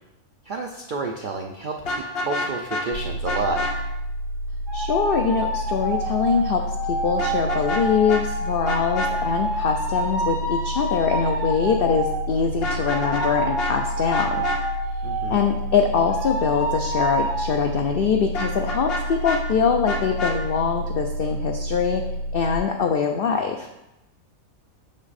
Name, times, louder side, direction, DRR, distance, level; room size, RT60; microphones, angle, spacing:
voice 1, 0.4-3.7 15.0-15.4, right 3 dB, 75° right, 2 dB, 0.4 m, -30 dB
Vehicle horn car horn honking, 1.8-2.9 3.3-3.7 7.2-8.2 8.7-9.1 12.5-13.3 13.6-13.7 14.1-14.6 18.3-19.4 19.9-20.4, left 2 dB, 50° left, 0.9 m, -28 dB
sound 1, 2.9-22.6, right 1 dB, 45° right, 2.2 m, -30 dB
voice 2, 4.7-6.6 7.0-14.4 15.3-22.0 22.3-23.7, left 6 dB, 80° left, 4 dB, 0.5 m, -23 dB
sound 2, 4.7-12.3 12.9-15.6 16.1-17.4, equal, 20° right, 1.1 m, -29 dB
6.0 x 5.3 x 4.1 m, 0.92 s
omnidirectional pair, 1.5 m